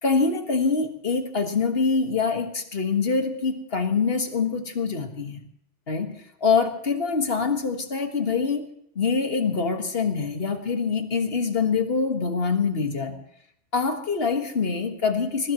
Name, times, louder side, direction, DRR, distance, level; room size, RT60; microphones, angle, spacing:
voice 1, 0.0-5.4 5.9-8.7 9.0-13.2 13.7-15.5, left 5 dB, 55° left, 5 dB, 1.9 m, -25 dB
22.5 x 20.0 x 3.1 m, 0.71 s
omnidirectional pair, 1.2 m